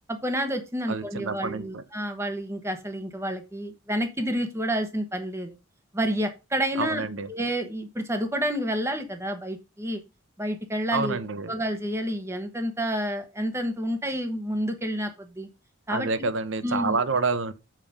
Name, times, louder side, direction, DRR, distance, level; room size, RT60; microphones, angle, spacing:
voice 1, 0.1-5.6 5.9-7.0 7.3-10.0 10.4-11.2 11.5-15.5 15.9-16.1 16.6-17.0, equal, 10° right, 1.1 m, -29 dB
voice 2, 0.9-1.8 6.8-7.3 10.9-11.5 15.9-17.5, right 4 dB, 55° right, 0.7 m, -28 dB
7.5 x 5.2 x 5.1 m
head